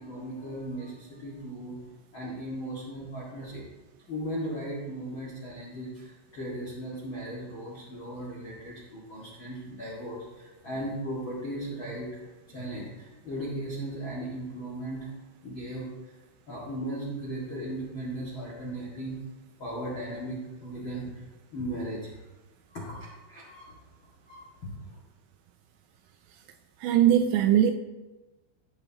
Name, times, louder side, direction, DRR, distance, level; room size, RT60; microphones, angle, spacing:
voice 1, 0.0-1.8 2.1-3.6 4.1-12.3 12.5-15.1 15.4-16.1 16.5-19.2 19.6-21.2 21.5-22.2 22.7-23.8 24.2-25.0, right 1 dB, 80° left, -5 dB, 1.1 m, -37 dB
voice 2, 26.8-27.7, right 10 dB, 85° right, 6 dB, 2.6 m, -20 dB
16.5 x 8.1 x 2.9 m, 1.1 s
omnidirectional pair, 5.8 m